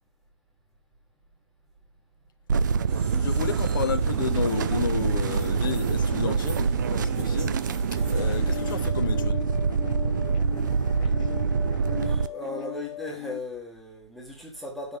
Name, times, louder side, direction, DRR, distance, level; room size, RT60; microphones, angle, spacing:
sound 1, 2.5-12.3, right 5 dB, 40° right, 0.6 m, -25 dB
sound 2, 2.9-8.9, right 5 dB, 15° right, 1.5 m, -40 dB
voice 1, 3.2-7.6 8.1-9.4, left 7 dB, 45° left, 1.2 m, -31 dB
sound 3, 7.9-13.4, left 16 dB, 15° left, 0.8 m, -38 dB
voice 2, 12.0-15.0, left 1 dB, ahead, 1.3 m, -37 dB
9.9 x 6.6 x 3.4 m
hypercardioid pair, 155°, 16 cm